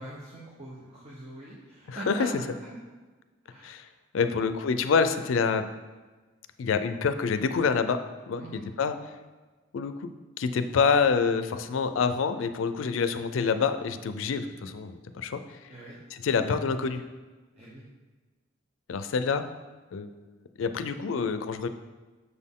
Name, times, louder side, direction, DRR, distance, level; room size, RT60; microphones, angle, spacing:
voice 1, 0.0-2.7 3.4-3.7 4.2-4.4 8.4-8.7 15.7-16.0 17.6-17.8, right 1 dB, 35° right, -6 dB, 0.9 m, -41 dB
voice 2, 1.9-2.3 3.6-3.9 4.1-5.6 6.6-8.0 8.3-9.0 9.7-10.1 10.4-15.4 16.1-17.0 18.9-19.4 19.9-20.1 20.6-21.7, left 5 dB, 80° left, 10 dB, 0.4 m, -27 dB
6.7 x 4.3 x 3.6 m, 1.3 s
head